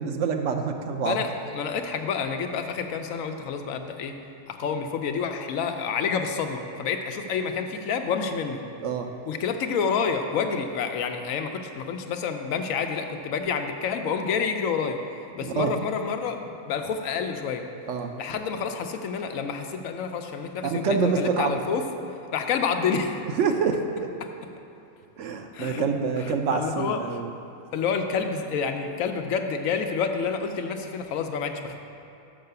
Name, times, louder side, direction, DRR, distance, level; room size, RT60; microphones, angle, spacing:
voice 1, 0.0-1.2 8.8-9.1 15.4-15.7 17.9-18.1 20.6-21.6 23.4-24.1 25.2-27.3, right 5 dB, 70° right, 5 dB, 0.9 m, -26 dB
voice 2, 1.0-4.1 4.5-8.6 9.3-15.0 15.3-17.7 18.2-21.8 22.3-23.2 25.5-25.9 26.2-27.2 27.7-31.8, left 6 dB, 85° left, 6 dB, 1.0 m, -28 dB
6.1 x 5.7 x 6.6 m, 2.7 s
omnidirectional pair, 1.4 m